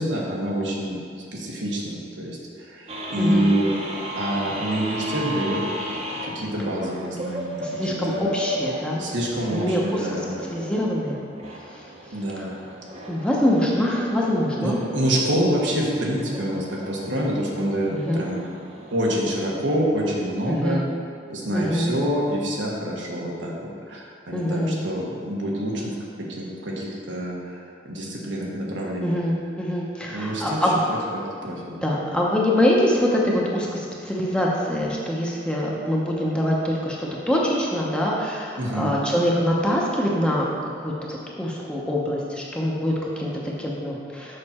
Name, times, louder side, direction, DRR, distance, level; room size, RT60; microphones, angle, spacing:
voice 1, 0.0-5.6 6.2-8.3 9.0-10.5 12.1-12.5 14.6-18.4 18.9-20.8 21.3-27.6 27.8-29.2 30.1-30.6 31.1-31.8 38.6-38.9, equal, 90° right, -3 dB, 1.4 m, -27 dB
sound 1, 2.9-19.1, equal, 35° right, 0.8 m, -35 dB
voice 2, 3.2-3.5 7.6-9.1 9.5-10.1 10.5-11.2 12.4-12.5 13.1-14.8 17.9-18.3 20.5-20.8 21.5-21.9 24.3-24.8 29.0-30.8 31.8-40.5 40.8-44.4, equal, 5° left, -4 dB, 0.8 m, -24 dB
6.6 x 5.8 x 4.3 m, 2.2 s
head